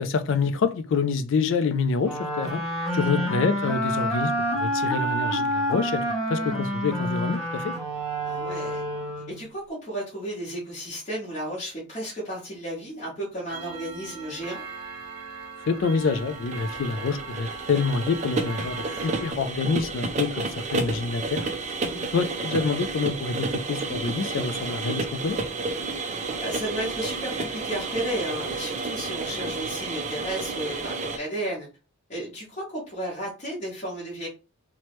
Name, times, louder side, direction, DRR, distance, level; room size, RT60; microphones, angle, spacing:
voice 1, 0.0-2.6 2.9-7.7 15.7-21.5 22.1-25.4, left 4 dB, 55° left, 0.3 m, -27 dB
sound 1, 2.0-9.5, equal, ahead, 0.8 m, -28 dB
voice 2, 8.2-8.8 9.3-14.6 21.8-22.1 26.4-31.7 32.1-34.3, right 1 dB, 30° left, 1.0 m, -33 dB
Clock, 13.5-19.3, right 4 dB, 70° right, 0.7 m, -39 dB
sound 2, 16.0-31.2, right 3 dB, 30° right, 0.3 m, -31 dB
3.1 x 2.1 x 3.0 m
head